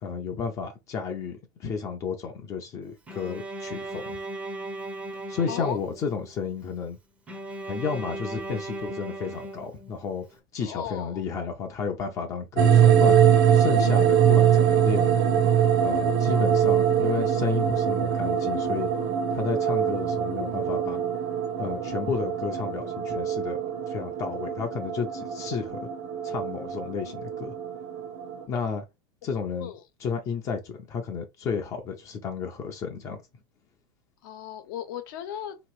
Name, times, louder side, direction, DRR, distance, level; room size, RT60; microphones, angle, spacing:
voice 1, 0.0-4.2 5.3-7.0 7.7-13.2 13.5-15.1 15.8-18.9 19.3-21.0 21.6-23.6 23.9-25.8 26.2-27.5 28.5-28.8 29.2-29.7 30.0-33.2, left 5 dB, 25° left, 0.6 m, -32 dB
Bowed string instrument, 3.1-6.3 7.3-10.2, right 2 dB, 10° right, 0.7 m, -37 dB
voice 2, 5.5-5.8 10.6-11.2 29.6-29.8 34.2-35.6, left 9 dB, 65° left, 1.0 m, -36 dB
sound 1, 12.6-28.4, right 9 dB, 40° right, 0.8 m, -23 dB
3.4 x 3.0 x 4.7 m
supercardioid pair, 165°, 12 cm